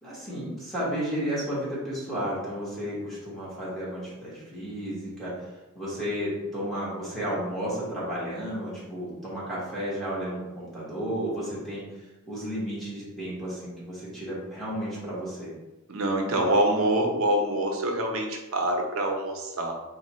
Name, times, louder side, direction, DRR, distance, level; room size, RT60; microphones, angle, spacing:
voice 1, 0.0-5.3 5.7-11.8 12.2-15.5, equal, ahead, -9 dB, 1.4 m, -32 dB
voice 2, 15.9-19.7, right 1 dB, 80° right, 2 dB, 0.7 m, -25 dB
3.6 x 2.3 x 4.2 m, 1.1 s
head